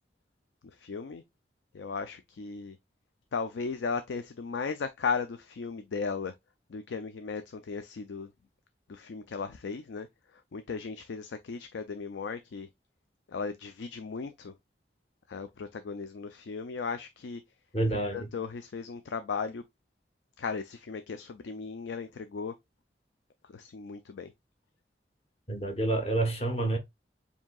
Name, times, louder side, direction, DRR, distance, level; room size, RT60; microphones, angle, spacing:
voice 1, 0.6-1.2 1.7-2.8 3.3-6.3 6.7-8.3 8.9-12.7 13.3-14.5 15.3-17.4 17.9-19.6 20.4-22.5 23.4-24.3, left 5 dB, 85° left, 0.4 m, -36 dB
voice 2, 17.7-18.3 25.5-26.8, right 2 dB, 35° left, 1.0 m, -28 dB
7.2 x 2.8 x 2.3 m
head